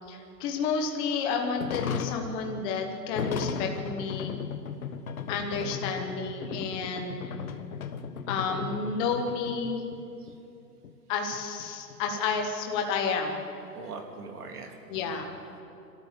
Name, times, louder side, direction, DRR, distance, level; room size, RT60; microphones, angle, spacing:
voice 1, 0.1-4.3 5.3-7.3 8.3-9.9 11.1-13.4 14.9-15.3, left 5 dB, 10° left, 3 dB, 0.9 m, -31 dB
sound 1, 1.6-10.0 10.3-10.4 10.8-10.9 11.3-13.0, left 6 dB, 55° left, 1.4 m, -36 dB
voice 2, 5.5-5.8 10.2-10.4 13.7-15.2, right 4 dB, 65° right, 3 dB, 3.3 m, -42 dB
26.5 x 13.0 x 8.5 m, 2.8 s
hypercardioid pair, 160°, 49 cm